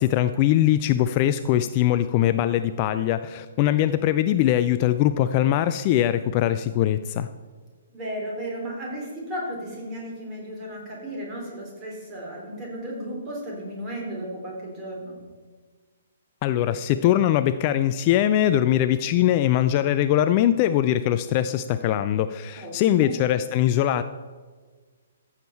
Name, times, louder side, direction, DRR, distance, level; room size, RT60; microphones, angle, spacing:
voice 1, 0.0-7.3 16.4-24.0, left 12 dB, 30° left, 11 dB, 0.3 m, -21 dB
voice 2, 7.9-15.2 22.6-23.1, equal, 20° right, -2 dB, 3.4 m, -34 dB
14.5 x 7.3 x 4.3 m, 1.5 s
figure-of-eight pair, 125°, 0 cm